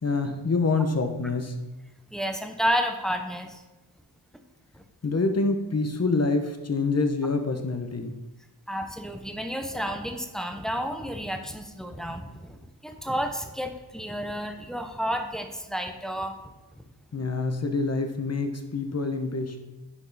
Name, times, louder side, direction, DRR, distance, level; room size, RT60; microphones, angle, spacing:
voice 1, 0.0-1.5 5.0-8.1 17.1-19.6, left 3 dB, 35° left, 6 dB, 1.0 m, -26 dB
voice 2, 2.1-3.6 4.7-4.8 8.7-16.3 16.8-16.9, equal, ahead, 5 dB, 0.8 m, -31 dB
9.9 x 5.3 x 4.0 m, 1.1 s
wide cardioid pair, 90°, 44 cm